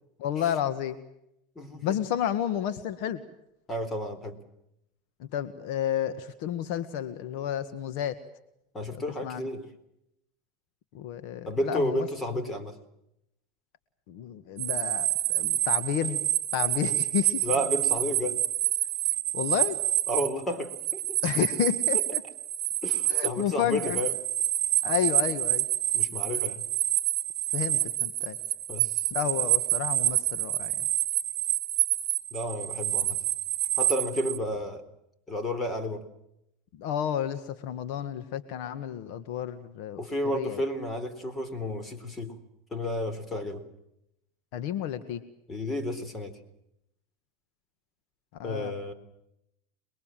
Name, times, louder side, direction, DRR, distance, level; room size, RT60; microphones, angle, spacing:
voice 1, 0.2-1.0 1.8-3.2 5.2-8.2 9.2-9.5 10.9-12.1 14.1-17.5 19.3-19.8 21.2-22.2 23.1-24.0 24.8-25.6 27.5-28.4 29.1-30.9 36.8-40.0 40.3-40.6 44.5-45.2 48.4-48.7, left 10 dB, 60° left, 12 dB, 1.7 m, -31 dB
voice 2, 1.6-1.9 3.7-4.4 8.7-9.6 11.5-12.8 17.4-18.4 20.1-21.2 22.8-24.1 25.9-26.6 28.7-29.0 32.3-33.2 33.8-34.8 35.3-36.0 40.0-42.4 42.7-43.6 45.5-46.4 48.4-48.9, equal, 15° left, 11 dB, 3.8 m, -31 dB
sound 1, 14.6-34.4, right 12 dB, 50° right, 1.4 m, -28 dB
28.0 x 22.0 x 7.6 m, 0.81 s
supercardioid pair, 135°, 0 cm